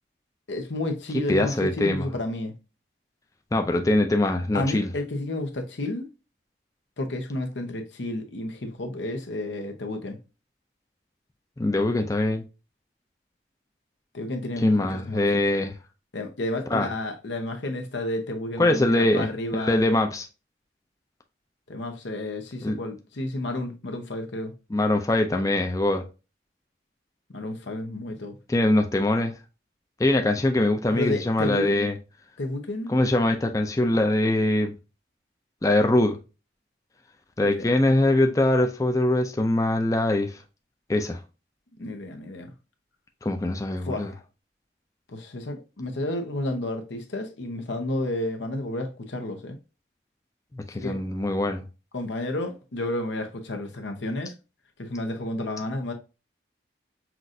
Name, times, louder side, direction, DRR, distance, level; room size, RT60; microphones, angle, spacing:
voice 1, 0.5-2.5 4.5-6.1 7.0-10.2 14.1-15.4 16.1-19.8 21.7-24.5 27.3-28.4 30.9-31.9 32.4-32.9 37.4-37.7 41.8-42.5 43.8-44.2 45.1-49.6 50.7-51.0 51.9-54.3 54.8-55.9, left 1 dB, 85° left, 0.8 m, -31 dB
voice 2, 1.3-2.1 3.5-4.9 11.6-12.4 14.6-15.7 16.7-16.9 18.6-20.3 22.6-22.8 24.7-26.0 28.5-29.3 30.0-32.0 32.9-34.7 35.6-36.2 37.4-40.4 40.9-41.2 43.2-44.1 50.5-51.6, left 1 dB, 20° left, 0.4 m, -23 dB
5.9 x 2.5 x 2.6 m
head